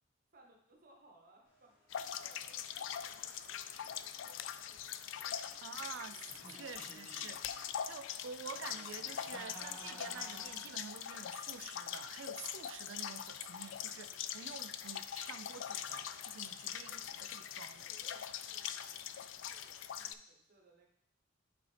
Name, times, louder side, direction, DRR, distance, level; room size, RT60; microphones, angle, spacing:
voice 1, 0.3-3.6 3.8-4.8 5.2-5.6 14.8-14.9 15.2-15.5 16.6-17.3 17.8-20.9, right 2 dB, 45° right, 0 dB, 1.1 m, -66 dB
sound 1, 1.4-14.5, left 1 dB, 55° left, 2.0 m, -70 dB
sound 2, 1.9-20.1, left 9 dB, 75° left, 0.4 m, -43 dB
voice 2, 5.6-17.9, right 6 dB, 80° right, 11 dB, 0.4 m, -49 dB
Giggle, 6.2-7.7 8.4-10.8, right 1 dB, 15° left, 1.6 m, -54 dB
8.7 x 4.2 x 3.3 m, 0.72 s
head